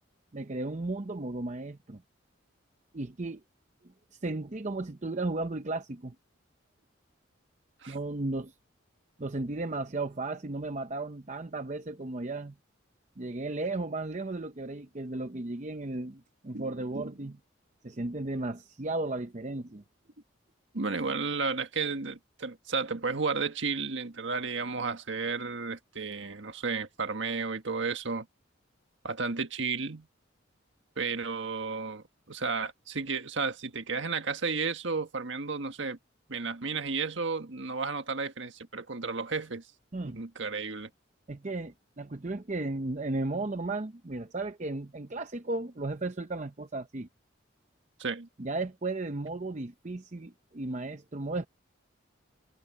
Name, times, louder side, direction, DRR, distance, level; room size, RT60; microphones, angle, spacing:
voice 1, 0.3-2.0 2.9-3.4 4.1-6.1 7.9-8.5 9.2-12.5 13.2-17.4 17.8-19.8 39.9-40.2 41.3-47.1 48.4-51.5, right 2 dB, 35° right, 0.7 m, -35 dB
voice 2, 20.7-28.2 29.0-30.1 31.0-36.0 36.3-39.6 40.0-40.9 48.0-48.3, right 4 dB, 65° right, 1.6 m, -33 dB
head